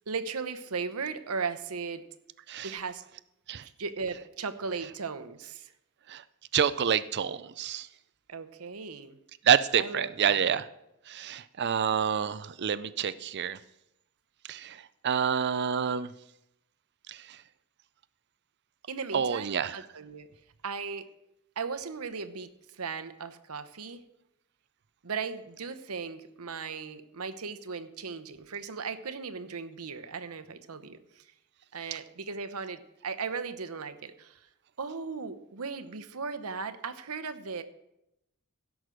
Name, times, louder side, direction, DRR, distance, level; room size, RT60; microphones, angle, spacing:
voice 1, 0.1-2.0 2.6-3.0 3.6-5.7 8.3-9.2 9.8-10.5 18.9-20.3 20.6-21.1 21.6-24.0 25.0-31.2 31.7-34.4 34.8-37.6, right 5 dB, 80° right, 10 dB, 0.9 m, -37 dB
voice 2, 6.5-7.9 9.4-10.7 11.1-13.6 14.5-16.1 17.1-17.4 19.1-19.8, right 7 dB, 50° right, 15 dB, 0.5 m, -28 dB
16.5 x 6.2 x 6.3 m, 0.85 s
head